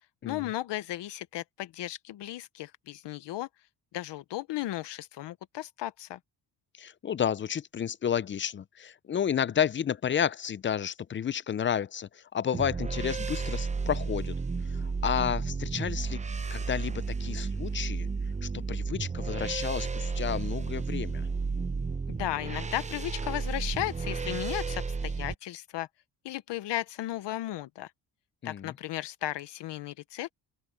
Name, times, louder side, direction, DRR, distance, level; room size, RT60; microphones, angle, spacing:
voice 1, 0.2-3.5 3.9-6.2 22.1-25.9 26.2-27.9 28.4-30.3, left 14 dB, 80° left, 0.8 m, -35 dB
voice 2, 6.8-14.4 14.7-16.2 16.5-18.1 18.4-21.3 28.4-28.7, left 8 dB, 30° left, 0.4 m, -31 dB
sound 1, 12.5-25.3, right 4 dB, 15° right, 0.6 m, -32 dB
open air
cardioid pair, 115°, 42 cm